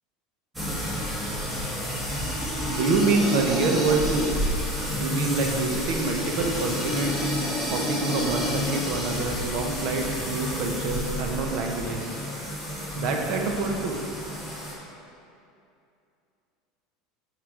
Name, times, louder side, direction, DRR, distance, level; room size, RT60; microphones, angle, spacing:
sound 1, 0.6-14.7, equal, 10° right, 1.5 m, -30 dB
voice 1, 2.7-4.4 4.9-7.4 7.7-12.2 12.9-14.0, right 3 dB, 55° right, 2 dB, 0.9 m, -26 dB
8.1 x 4.9 x 3.8 m, 2.6 s
supercardioid pair, 130°, 0 cm